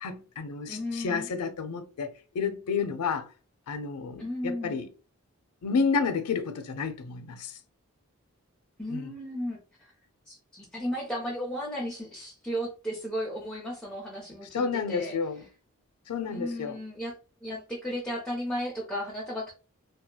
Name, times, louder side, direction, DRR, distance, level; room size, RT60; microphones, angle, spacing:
voice 1, 0.0-3.3 3.7-4.9 5.6-7.6 8.9-9.1 14.5-15.4 16.1-16.8, left 5 dB, 90° left, 0.4 m, -30 dB
voice 2, 0.7-1.3 4.2-4.8 8.8-9.6 10.3-15.2 16.3-19.5, equal, 5° left, 0.5 m, -34 dB
2.7 x 2.3 x 2.2 m
head